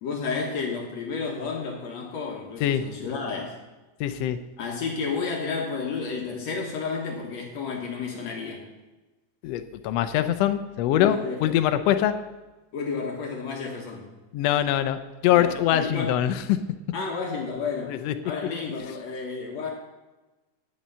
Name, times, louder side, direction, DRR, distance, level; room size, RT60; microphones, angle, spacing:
voice 1, 0.0-3.6 4.6-8.7 10.9-11.6 12.7-14.1 15.3-16.2 16.9-18.0 18.2-19.7, left 5 dB, 65° left, 0 dB, 2.3 m, -31 dB
voice 2, 4.0-4.4 9.4-12.1 14.3-15.0 15.2-16.6 17.9-18.1, left 11 dB, 85° left, 10 dB, 1.4 m, -23 dB
10.5 x 9.2 x 5.5 m, 1.1 s
omnidirectional pair, 3.5 m